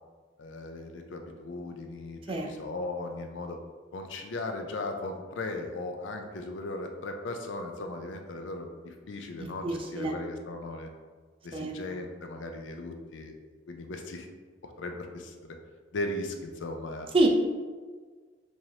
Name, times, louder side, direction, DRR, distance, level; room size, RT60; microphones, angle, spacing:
voice 1, 0.4-3.6 3.9-10.9 11.4-13.4 13.7-14.3 14.6-15.5 15.9-17.1, left 2 dB, 75° left, 4 dB, 0.5 m, -37 dB
voice 2, 9.6-10.1 11.5-11.7 17.1-17.3, right 2 dB, 30° right, 2 dB, 0.4 m, -26 dB
4.6 x 2.8 x 2.8 m, 1.5 s
head